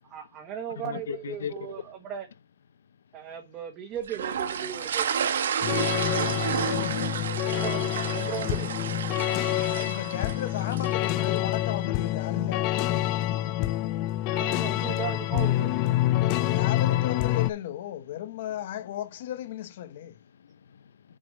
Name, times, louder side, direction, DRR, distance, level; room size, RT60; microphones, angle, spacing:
voice 1, 0.0-2.3 3.1-5.1 7.5-8.7 14.3-15.7, right 9 dB, 20° right, 1.2 m, -37 dB
voice 2, 0.8-2.0 12.3-12.5 13.1-14.6 15.7-16.6 18.8-18.9 20.0-21.2, left 8 dB, 90° left, 0.6 m, -43 dB
sound 1, 4.1-11.4, right 7 dB, 85° right, 1.1 m, -31 dB
sound 2, 5.6-17.5, left 14 dB, 25° left, 0.4 m, -27 dB
voice 3, 6.6-7.3 9.6-13.0 16.5-20.1, left 11 dB, 45° left, 0.8 m, -35 dB
6.4 x 6.1 x 5.0 m
hypercardioid pair, 180°, 0 cm